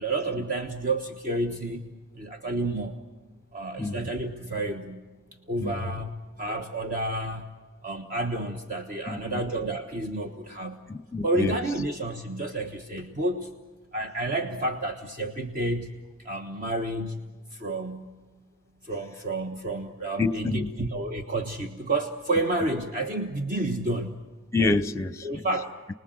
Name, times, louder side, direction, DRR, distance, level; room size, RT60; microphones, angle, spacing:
voice 1, 0.0-1.9 2.1-3.0 3.5-5.0 5.5-7.5 7.8-10.8 11.2-13.5 13.9-17.2 17.5-18.1 18.8-24.2 25.2-25.8, right 2 dB, 40° right, 1.3 m, -30 dB
voice 2, 9.1-9.4 10.9-11.6 20.2-20.7 24.5-25.5, left 3 dB, 15° left, 0.8 m, -27 dB
29.5 x 20.0 x 7.8 m
head